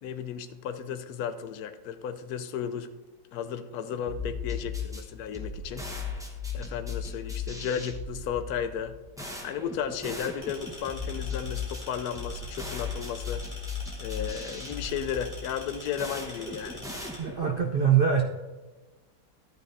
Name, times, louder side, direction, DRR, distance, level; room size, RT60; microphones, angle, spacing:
voice 1, 0.0-2.9 3.3-5.9 6.5-9.0 9.4-13.5 14.0-16.9, left 8 dB, 65° left, 10 dB, 1.0 m, -34 dB
sound 1, 4.1-17.7, left 5 dB, 5° right, 0.7 m, -37 dB
sound 2, 10.4-17.2, left 1 dB, 20° left, 2.5 m, -45 dB
voice 2, 17.2-18.2, right 8 dB, 75° right, 1 dB, 0.5 m, -23 dB
13.0 x 9.4 x 2.7 m, 1.2 s
omnidirectional pair, 1.9 m